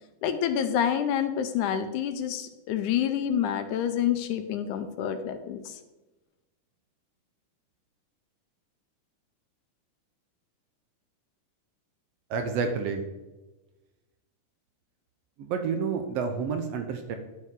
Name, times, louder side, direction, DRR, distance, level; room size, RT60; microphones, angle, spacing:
voice 1, 0.2-5.8, left 9 dB, 80° left, 8 dB, 2.0 m, -28 dB
voice 2, 12.3-13.1 15.4-17.2, right 5 dB, 75° right, 6 dB, 1.5 m, -29 dB
11.0 x 6.4 x 3.7 m, 1.1 s
omnidirectional pair, 3.7 m